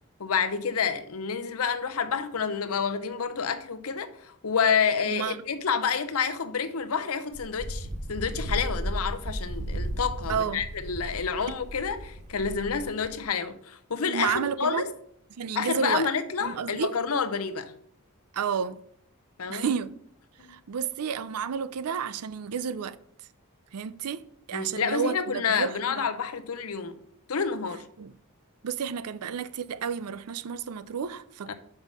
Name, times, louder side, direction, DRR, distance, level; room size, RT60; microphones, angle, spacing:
voice 1, 0.2-14.9 15.5-17.7 19.4-19.6 20.4-20.5 24.5-27.0 27.3-27.8 31.5-31.6, left 6 dB, 70° left, 0.7 m, -29 dB
voice 2, 5.0-5.4 10.3-10.6 14.1-14.9 15.4-16.1 16.4-16.9 18.3-18.8 19.5-19.9 20.5-23.0 23.7-26.1 28.0-28.1 28.6-31.5, right 7 dB, 85° right, 0.5 m, -31 dB
Wind, 7.3-13.3, right 1 dB, 30° right, 0.5 m, -34 dB
5.6 x 5.5 x 6.0 m
head